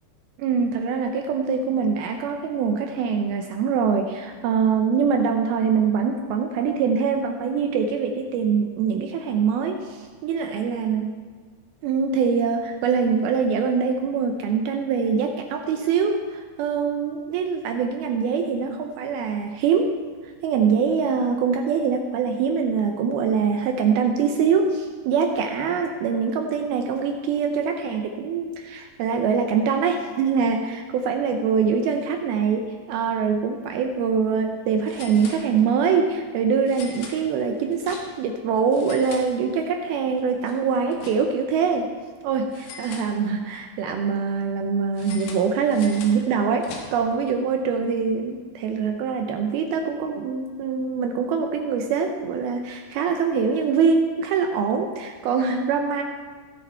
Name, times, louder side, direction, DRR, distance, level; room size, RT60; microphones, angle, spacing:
voice 1, 0.4-11.2 11.8-20.0 20.4-41.9 42.2-56.0, right 6 dB, 80° right, 4 dB, 2.3 m, -23 dB
sound 1, 33.7-33.9 34.2-34.3 34.8-35.9 36.6-38.4 38.7-39.8 40.2-41.6 42.5-43.6 44.9-47.2, left 4 dB, 75° left, 3.4 m, -42 dB
17.5 x 6.9 x 4.4 m, 1.5 s
omnidirectional pair, 4.8 m